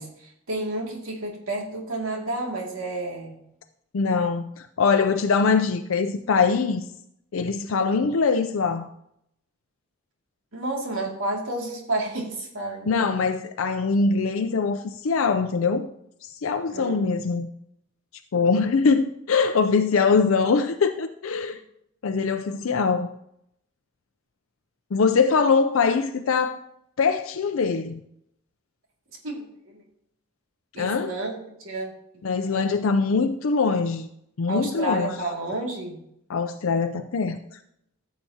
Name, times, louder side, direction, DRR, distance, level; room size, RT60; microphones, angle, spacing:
voice 1, 0.0-3.3 10.5-13.2 16.7-17.2 29.2-29.8 30.7-32.7 34.5-36.0, right 2 dB, 80° right, 2.4 m, -31 dB
voice 2, 3.9-6.8 7.3-8.9 12.9-15.9 16.2-17.5 18.3-21.6 22.0-23.1 24.9-26.6 27.0-28.0 30.8-31.1 32.2-34.1 34.4-35.1 36.3-37.6, left 5 dB, 75° left, 0.5 m, -23 dB
14.5 x 6.8 x 2.8 m
head